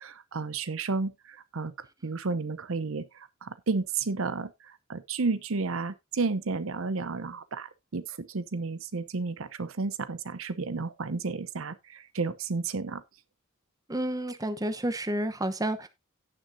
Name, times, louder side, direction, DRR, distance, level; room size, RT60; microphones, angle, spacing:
voice 1, 0.0-1.7 2.0-13.0, right 4 dB, 75° right, 0.7 m, -32 dB
voice 2, 13.9-15.9, right 1 dB, 20° right, 0.9 m, -30 dB
17.0 x 6.1 x 2.6 m
head